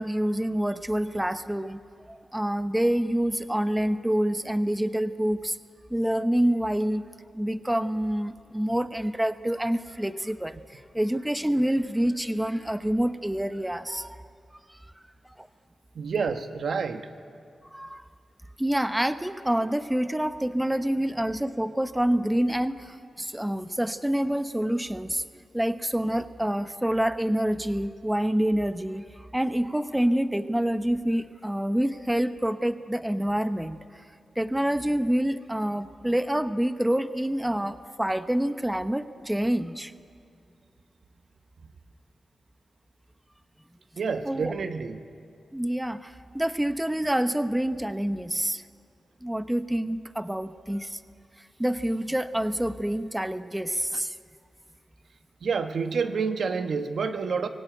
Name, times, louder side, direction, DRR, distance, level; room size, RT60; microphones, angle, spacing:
voice 1, 0.0-1.8 2.1-5.6 5.9-7.0 7.3-14.2 14.5-14.9 15.2-15.5 17.7-18.0 18.6-25.2 25.5-34.1 34.4-40.0 44.2-44.5 45.5-48.6 49.2-51.0 51.4-54.2, right 1 dB, 10° right, 10 dB, 0.9 m, -27 dB
voice 2, 15.9-17.1 44.0-45.0 55.4-57.5, right 5 dB, 75° right, 7 dB, 1.2 m, -28 dB
24.5 x 17.5 x 9.1 m, 2.3 s
cardioid pair, 70°, 0 cm